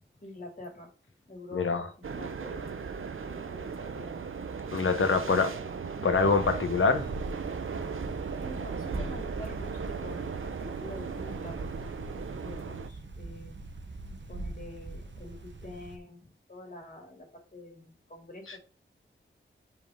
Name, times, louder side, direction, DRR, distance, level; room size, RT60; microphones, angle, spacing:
voice 1, 0.2-0.9 1.3-2.7 3.1-4.2 5.0-5.7 8.4-13.6 14.3-18.6, left 1 dB, 45° left, 2.8 m, -46 dB
voice 2, 1.5-1.9 4.7-5.5 6.0-7.0, left 4 dB, 90° left, 1.1 m, -25 dB
sound 1, 2.0-12.9, right 5 dB, 80° right, 0.8 m, -37 dB
sound 2, 6.1-16.0, right 2 dB, 65° right, 1.1 m, -41 dB
5.4 x 4.9 x 3.7 m
wide cardioid pair, 55°, 21 cm